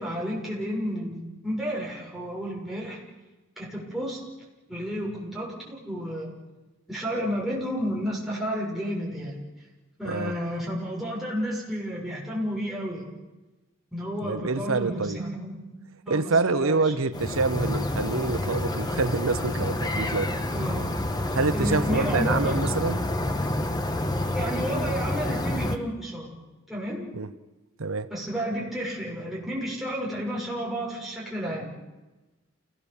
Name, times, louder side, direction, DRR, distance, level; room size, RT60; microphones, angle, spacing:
voice 1, 0.0-3.0 3.6-4.2 4.7-6.3 6.9-9.3 10.0-13.1 13.9-15.6 16.0-16.9 20.5-21.0 21.5-22.6 24.3-26.3 26.7-27.1 28.1-31.7, equal, ahead, 6.8 m, -31 dB
voice 2, 10.0-10.3 14.2-15.2 16.1-20.3 21.3-23.0 27.1-27.3 27.8-28.1, right 4 dB, 80° right, 0.8 m, -26 dB
sound 1, 17.1-25.8, left 1 dB, 20° left, 1.3 m, -28 dB
28.5 x 18.5 x 7.3 m
head